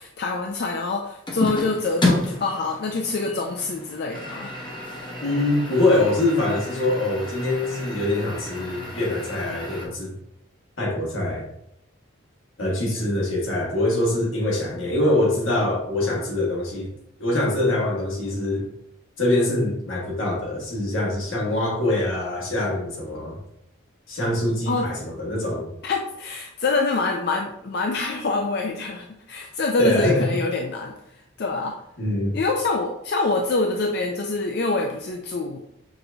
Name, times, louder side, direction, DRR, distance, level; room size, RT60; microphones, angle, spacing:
voice 1, 0.0-4.5 24.7-24.9 25.8-30.9 31.4-31.8 32.3-35.6, left 3 dB, 50° left, 2 dB, 0.4 m, -25 dB
sound 1, 1.3-9.9, left 1 dB, 25° left, 0.8 m, -31 dB
voice 2, 5.2-10.1 10.8-11.4 12.6-16.9 17.2-18.7 19.2-23.4 24.1-25.7 29.8-30.3 32.0-32.4, left 1 dB, 85° left, -2 dB, 1.6 m, -24 dB
5.9 x 2.6 x 3.4 m, 0.78 s
head